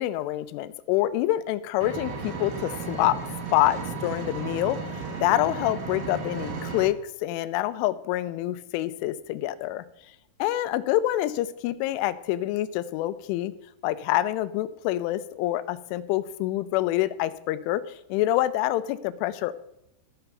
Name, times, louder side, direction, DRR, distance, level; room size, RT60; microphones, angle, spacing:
voice 1, 0.0-3.2 3.5-4.8 5.2-9.9 10.4-13.5 13.8-19.5, left 14 dB, 90° left, 14 dB, 3.1 m, -26 dB
Engine, 1.8-6.8, right 4 dB, 85° right, 1.4 m, -34 dB
13.5 x 5.8 x 6.7 m, 0.86 s
omnidirectional pair, 5.5 m